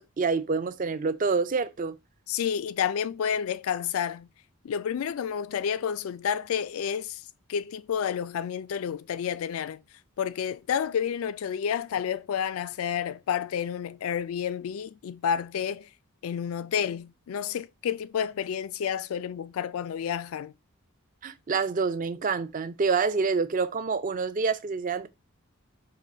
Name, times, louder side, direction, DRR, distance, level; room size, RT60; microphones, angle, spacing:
voice 1, 0.0-1.9 21.2-25.1, right 4 dB, 35° right, 0.4 m, -27 dB
voice 2, 2.3-4.3 4.6-7.2 7.5-9.8 10.2-15.9 16.2-20.5, left 8 dB, 70° left, 0.3 m, -30 dB
3.8 x 3.0 x 4.2 m
head